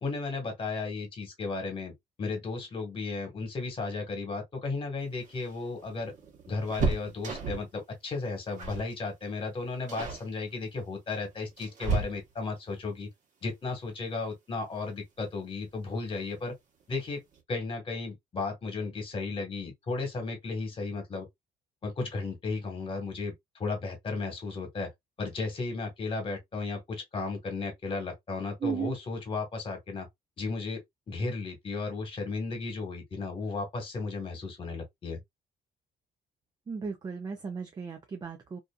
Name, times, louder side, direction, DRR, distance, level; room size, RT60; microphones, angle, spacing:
voice 1, 0.0-1.9 2.2-6.1 6.5-13.1 13.4-16.5 16.9-17.2 17.5-21.3 21.8-24.9 25.2-30.1 30.4-30.8 31.1-35.2, left 3 dB, 30° left, 1.3 m, -34 dB
sound 1, 5.1-7.8 8.6-8.9 9.2-9.5 9.9-10.3 11.1-12.6 14.3-14.4 14.8-14.9 16.1-16.5 16.8-16.9 17.2-17.4, right 4 dB, 50° right, 1.1 m, -33 dB
voice 2, 28.6-28.9 36.7-38.6, right 6 dB, 25° right, 0.4 m, -35 dB
2.6 x 2.4 x 2.3 m
cardioid pair, 110°, 17 cm